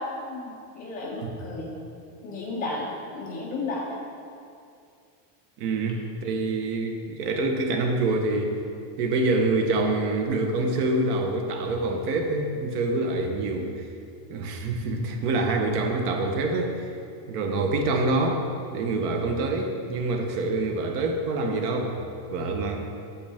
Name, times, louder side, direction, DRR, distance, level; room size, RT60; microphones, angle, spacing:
voice 1, 0.0-1.7 2.2-3.8, left 2 dB, 20° left, -3 dB, 0.5 m, -33 dB
voice 2, 5.6-8.5 9.0-13.8 14.3-16.9 17.3-18.4 18.7-22.0 22.3-22.9, right 2 dB, 70° right, 3 dB, 1.2 m, -26 dB
8.6 x 8.0 x 3.5 m, 2.4 s
cardioid pair, 175°, 48 cm